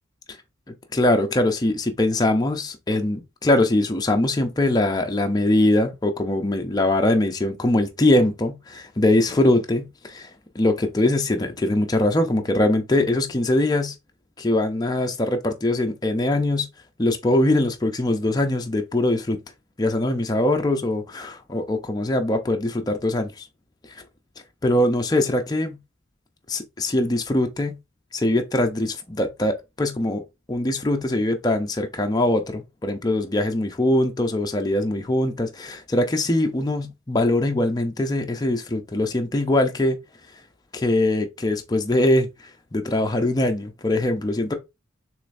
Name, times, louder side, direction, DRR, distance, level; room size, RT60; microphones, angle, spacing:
voice 1, 0.7-10.3 10.5-13.9 14.4-16.7 17.0-19.4 19.8-23.5 24.6-25.8 26.5-27.8 28.1-30.2 30.5-40.0 40.7-42.3 42.7-44.5, left 1 dB, 20° left, 0.5 m, -22 dB
6.5 x 3.1 x 2.5 m
head